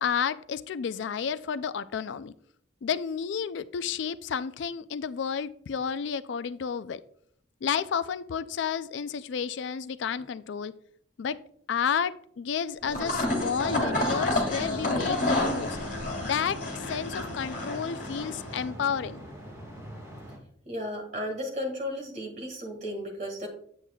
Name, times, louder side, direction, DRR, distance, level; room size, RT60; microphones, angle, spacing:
voice 1, 0.0-2.3 2.8-7.0 7.6-10.7 11.2-11.4 11.7-15.8 16.2-19.2, left 7 dB, 70° left, 0.3 m, -31 dB
sound 1, 12.8-18.6, left 1 dB, 45° left, 2.1 m, -30 dB
sound 2, 12.9-19.5, left 4 dB, 10° left, 2.0 m, -43 dB
sound 3, 13.3-20.4, right 1 dB, 15° right, 1.6 m, -42 dB
voice 2, 20.7-23.5, equal, 40° right, 1.8 m, -34 dB
8.3 x 7.3 x 2.3 m
head